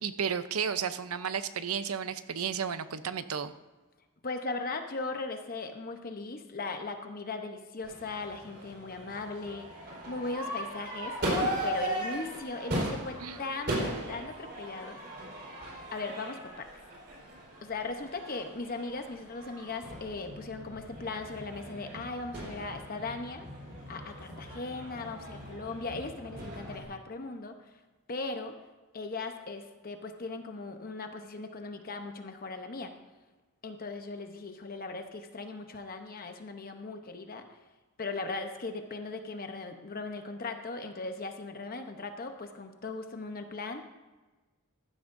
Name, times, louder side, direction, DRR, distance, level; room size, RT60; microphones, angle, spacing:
voice 1, 0.0-3.5 13.2-13.4, right 7 dB, 85° right, 12 dB, 0.7 m, -33 dB
voice 2, 4.2-15.0 15.9-16.7 17.6-23.5 23.9-27.8 28.1-28.5 28.9-32.9 33.6-37.4 38.0-43.8, left 3 dB, 40° left, 6 dB, 0.9 m, -38 dB
Crowd / Fireworks, 7.8-26.8, right 1 dB, 50° right, 4.0 m, -38 dB
15.0 x 12.0 x 2.6 m, 1.2 s
head